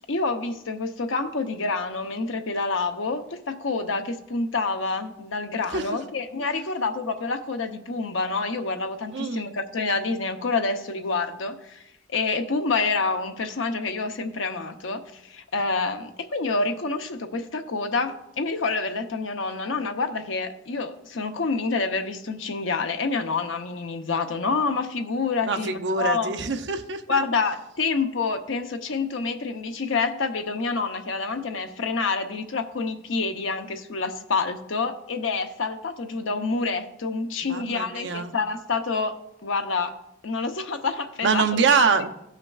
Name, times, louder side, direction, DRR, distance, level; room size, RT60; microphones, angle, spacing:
voice 1, 0.1-11.8 12.1-26.3 27.1-39.9 40.2-41.5, left 4 dB, 85° left, 6 dB, 0.8 m, -27 dB
voice 2, 9.1-9.5 25.4-27.2 37.4-38.3 41.2-42.1, right 5 dB, 65° right, 7 dB, 0.7 m, -24 dB
16.5 x 5.7 x 2.4 m, 0.85 s
head